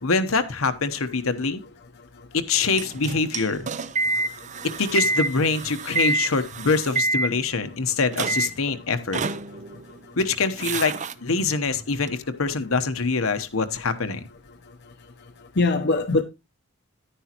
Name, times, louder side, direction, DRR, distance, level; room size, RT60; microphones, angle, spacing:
voice 1, 0.0-1.6 2.3-3.7 4.8-9.2 10.2-10.9 11.2-14.3, left 4 dB, 75° left, 1.0 m, -24 dB
sound 1, 2.7-7.8 8.1-8.7 9.1-9.9 10.2-11.1 12.1-12.2, right 3 dB, 35° right, 0.5 m, -27 dB
voice 2, 5.8-6.5 7.7-7.8 9.5-9.8 15.5-16.2, left 3 dB, 50° left, 0.8 m, -25 dB
10.5 x 10.0 x 2.9 m
head